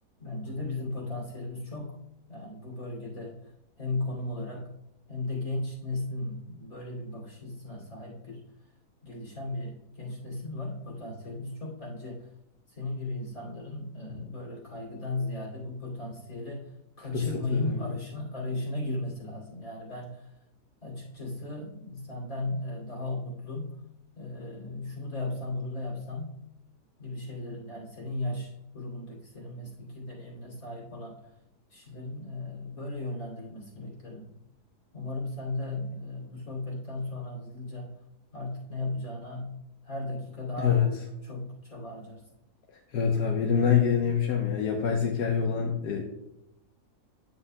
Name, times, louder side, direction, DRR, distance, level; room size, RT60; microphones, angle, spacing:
voice 1, 0.2-2.0 2.3-3.4 3.8-4.7 5.1-8.4 9.0-12.3 12.8-16.6 17.0-20.2 20.8-23.8 24.1-26.3 27.0-31.2 31.7-34.4 34.9-37.9 38.3-39.5 39.8-40.8 41.2-42.3, left 2 dB, 55° left, -3 dB, 3.1 m, -36 dB
voice 2, 17.1-17.8 40.6-40.9 42.9-46.0, left 7 dB, 85° left, 1 dB, 1.4 m, -25 dB
9.4 x 8.4 x 2.2 m, 0.85 s
omnidirectional pair, 1.7 m